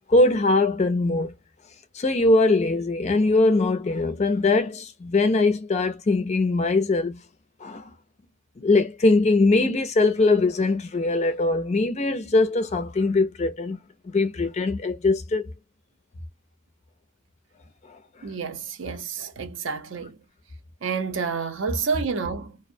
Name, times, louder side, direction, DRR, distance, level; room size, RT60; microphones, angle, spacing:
voice 1, 0.1-1.3 1.9-7.2 7.6-7.9 8.6-13.8 14.1-15.5 17.9-18.0, left 2 dB, 30° left, 0.4 m, -21 dB
voice 2, 18.2-20.2 20.8-22.6, right 5 dB, 60° right, 0.5 m, -29 dB
2.5 x 2.0 x 2.5 m
head